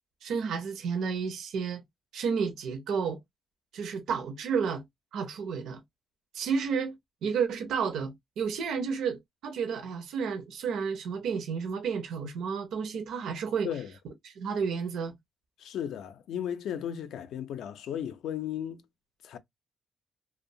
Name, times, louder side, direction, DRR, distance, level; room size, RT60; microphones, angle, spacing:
voice 1, 0.2-1.8 2.1-3.2 3.7-4.8 5.1-5.8 6.3-13.7 14.2-15.1, right 6 dB, 70° right, 0.6 m, -31 dB
voice 2, 15.6-18.8 19.2-19.4, left 9 dB, 70° left, 0.4 m, -35 dB
2.7 x 2.1 x 2.6 m
cardioid pair, 155°, 0 cm